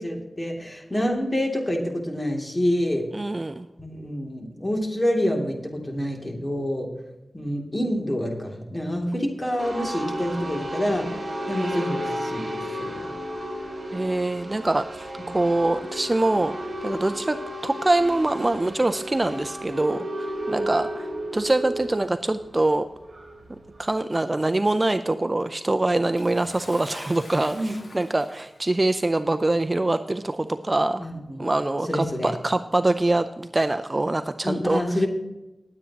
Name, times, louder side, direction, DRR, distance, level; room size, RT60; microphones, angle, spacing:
voice 1, 0.0-3.0 3.8-6.9 7.3-11.1 11.5-13.1 27.5-27.8 31.0-31.5 31.9-32.3 34.4-35.1, equal, 20° left, 1 dB, 2.6 m, -27 dB
voice 2, 3.1-3.7 11.6-11.8 13.9-16.6 16.8-17.4 17.6-22.9 23.8-31.0 31.4-35.0, right 2 dB, 30° right, 9 dB, 0.5 m, -24 dB
sound 1, 9.6-23.8, equal, 50° right, 3.1 m, -33 dB
Bathtub (filling or washing) / Splash splatter, 26.2-28.8 29.7-29.8 30.8-30.9, left 2 dB, 80° left, 1.7 m, -46 dB
19.5 x 8.4 x 2.9 m, 0.99 s
wide cardioid pair, 60°, 0 cm